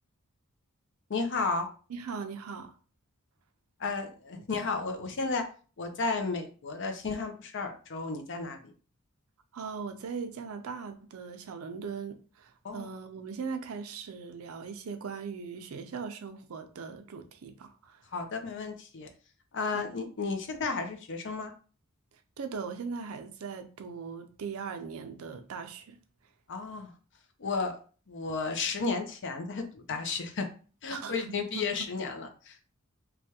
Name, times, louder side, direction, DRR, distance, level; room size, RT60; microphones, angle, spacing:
voice 1, 1.1-1.7 3.8-5.4 5.8-8.6 12.6-12.9 18.1-19.1 19.5-21.5 26.5-26.9 27.4-27.7 28.1-30.5 30.8-32.7, left 4 dB, 60° left, 0.6 m, -33 dB
voice 2, 1.9-2.7 9.5-18.0 19.7-19.9 22.4-26.0 30.9-31.9, right 5 dB, 75° right, 0.5 m, -39 dB
3.3 x 2.3 x 2.8 m
head